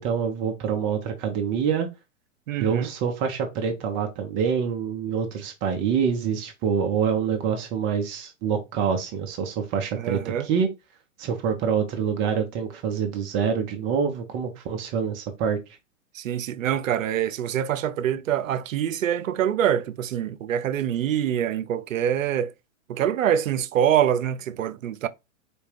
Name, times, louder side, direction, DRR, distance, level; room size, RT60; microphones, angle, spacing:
voice 1, 0.0-1.9 2.6-10.7 11.2-15.6, right 7 dB, 30° right, 0.8 m, -26 dB
voice 2, 2.5-2.9 9.9-10.5 16.1-22.5 22.9-25.1, right 10 dB, 85° right, 0.5 m, -25 dB
4.2 x 2.3 x 3.3 m
hypercardioid pair, 120°, 39 cm